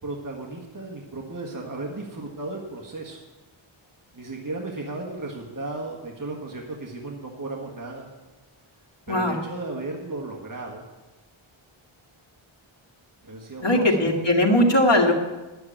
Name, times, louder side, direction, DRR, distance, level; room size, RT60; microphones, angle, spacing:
voice 1, 0.0-3.2 4.1-8.1 9.1-10.8 13.2-14.1, right 2 dB, 40° right, 0 dB, 1.6 m, -35 dB
voice 2, 13.6-15.1, left 1 dB, 60° left, -1 dB, 2.0 m, -19 dB
10.5 x 7.8 x 8.7 m, 1.1 s
wide cardioid pair, 70°, 50 cm